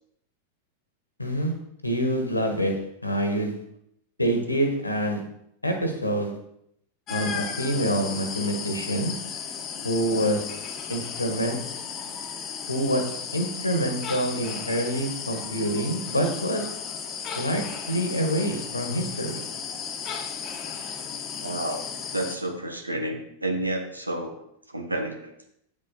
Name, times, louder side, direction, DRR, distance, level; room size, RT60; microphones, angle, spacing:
voice 1, 1.2-1.5 1.8-3.6 4.2-5.2 5.6-6.3 7.1-9.1 9.8-10.4 10.9-11.6 12.7-13.0 13.3-16.6 17.4-19.4, equal, 85° left, 4 dB, 1.5 m, -26 dB
sound 1, 7.1-22.4, left 6 dB, 30° left, 1.1 m, -35 dB
voice 2, 21.4-21.8 22.1-24.3 24.7-25.3, right 1 dB, 85° right, 5 dB, 1.2 m, -30 dB
8.6 x 7.6 x 4.1 m, 0.74 s
figure-of-eight pair, 90°, 0 cm